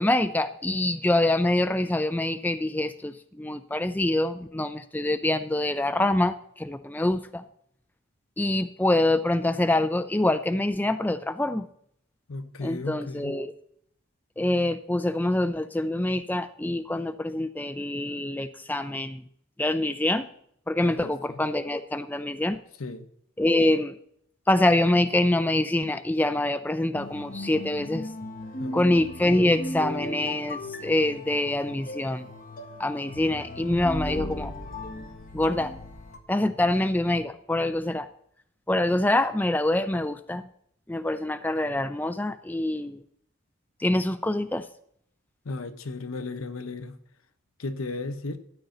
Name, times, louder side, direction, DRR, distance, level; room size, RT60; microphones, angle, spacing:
voice 1, 0.0-7.4 8.4-11.7 12.6-13.5 14.4-19.2 19.6-20.2 20.7-22.6 23.4-24.0 24.5-28.1 28.7-32.3 32.8-34.5 35.3-35.7 36.3-38.1 38.7-40.5 40.9-43.0 43.8-44.7, left 1 dB, 10° left, 0.4 m, -25 dB
voice 2, 12.3-13.4 20.8-21.4 22.8-23.1 28.6-28.9 45.4-47.0 47.6-48.4, left 3 dB, 85° left, 0.9 m, -35 dB
sound 1, 26.9-36.2, left 1 dB, 40° left, 1.2 m, -36 dB
13.0 x 9.3 x 3.9 m
head